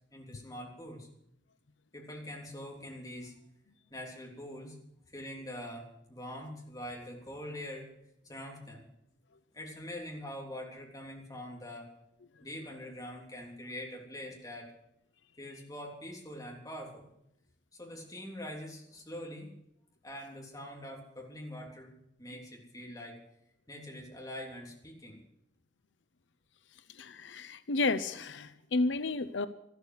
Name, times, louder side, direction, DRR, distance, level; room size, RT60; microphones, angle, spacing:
voice 1, 0.1-1.1 1.9-3.3 3.9-4.8 5.1-7.9 8.2-8.9 9.5-11.9 12.4-14.7 15.4-17.1 17.7-19.5 20.0-23.2 23.7-25.2, left 1 dB, 20° left, 0 dB, 3.4 m, -44 dB
voice 2, 27.0-29.5, left 3 dB, 85° left, 13 dB, 0.7 m, -31 dB
13.5 x 13.0 x 7.9 m, 0.78 s
head